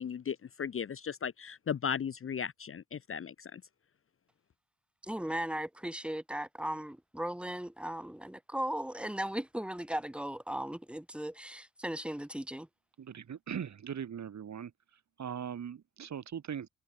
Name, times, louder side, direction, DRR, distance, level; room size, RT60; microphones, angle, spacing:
voice 1, 0.0-3.6, left 7 dB, 40° left, 0.9 m, -36 dB
voice 2, 5.0-12.7, right 1 dB, 5° right, 4.3 m, -37 dB
voice 3, 13.0-14.7 15.2-16.7, right 8 dB, 55° right, 3.6 m, -40 dB
wide cardioid pair, 160°, 33 cm